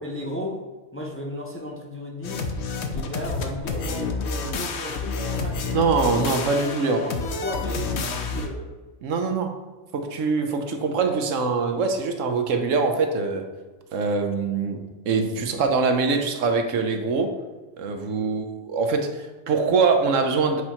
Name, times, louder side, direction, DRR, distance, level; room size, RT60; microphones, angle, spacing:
voice 1, 0.0-0.6 0.9-2.4 2.9-5.8 6.8-8.7, left 1 dB, 15° left, -1 dB, 0.6 m, -34 dB
sound 1, 2.2-8.5, left 4 dB, 65° left, 0.9 m, -29 dB
voice 2, 5.7-7.0 9.0-9.5 9.9-13.4 13.9-17.3 17.8-20.6, right 4 dB, 80° right, 5 dB, 1.1 m, -23 dB
7.9 x 2.9 x 4.3 m, 1.3 s
omnidirectional pair, 1.3 m